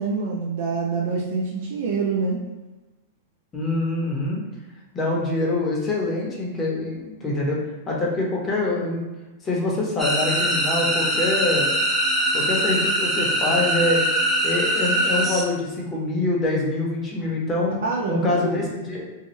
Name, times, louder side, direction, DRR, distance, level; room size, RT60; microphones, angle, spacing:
voice 1, 0.0-2.4 17.8-18.5, right 4 dB, 65° right, -2 dB, 0.5 m, -25 dB
voice 2, 3.5-4.4 4.9-7.6 7.9-9.0 9.4-11.7 12.3-14.0 14.4-17.7 18.1-19.1, left 2 dB, 20° left, -3 dB, 0.8 m, -25 dB
sound 1, 10.0-15.4, right 1 dB, 5° right, 0.5 m, -22 dB
2.7 x 2.3 x 3.1 m, 1.1 s
hypercardioid pair, 135°, 0 cm